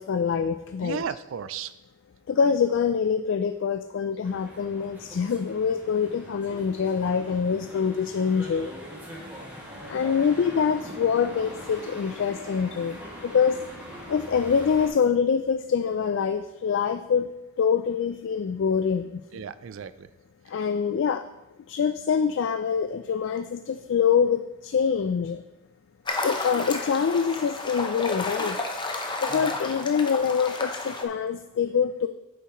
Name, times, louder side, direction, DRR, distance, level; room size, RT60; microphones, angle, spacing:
voice 1, 0.0-1.0 2.3-8.7 9.9-13.6 14.1-17.3 17.6-19.1 20.5-21.2 21.7-25.4 26.2-28.7 29.2-32.1, left 6 dB, 60° left, 9 dB, 0.3 m, -25 dB
voice 2, 0.8-1.7 19.3-20.1 20.5-20.6 29.3-29.6, right 7 dB, 65° right, 15 dB, 0.4 m, -35 dB
sound 1, 4.2-14.9, equal, 10° right, 2.1 m, -42 dB
sound 2, 26.1-31.0, left 2 dB, 20° left, 0.8 m, -32 dB
9.3 x 6.8 x 3.0 m, 0.93 s
head